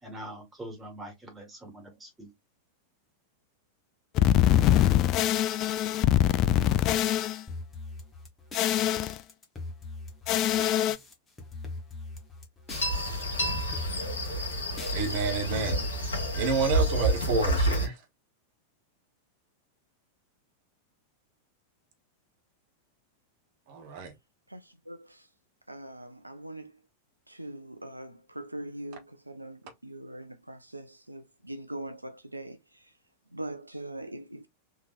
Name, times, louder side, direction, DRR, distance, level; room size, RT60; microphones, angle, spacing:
voice 1, 0.0-2.3, right 1 dB, 10° right, 1.6 m, -43 dB
sound 1, 4.1-7.4 8.5-9.2 10.3-10.9, left 12 dB, 35° left, 0.3 m, -23 dB
sound 2, 7.5-11.1 11.4-13.2 13.5-15.8, left 3 dB, 15° left, 1.2 m, -42 dB
sound 3, 12.7-17.9, equal, 75° left, 1.6 m, -29 dB
voice 2, 14.9-15.9 16.3-18.0 23.7-24.1, right 4 dB, 45° right, 1.0 m, -29 dB
voice 3, 24.5-25.3 25.7-26.7 27.3-32.8 33.3-34.5, right 1 dB, 85° right, 0.3 m, -42 dB
3.6 x 3.0 x 2.4 m
figure-of-eight pair, 90°, 0 cm